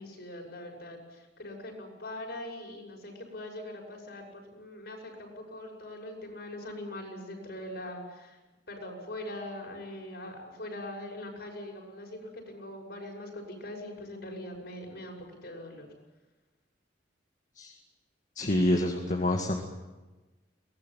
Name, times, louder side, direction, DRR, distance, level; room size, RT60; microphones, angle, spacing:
voice 1, 0.0-8.4 8.7-15.9, left 1 dB, 60° left, 1 dB, 6.4 m, -42 dB
voice 2, 18.4-19.6, left 1 dB, 45° left, 2 dB, 2.0 m, -27 dB
23.0 x 19.0 x 9.3 m, 1.1 s
head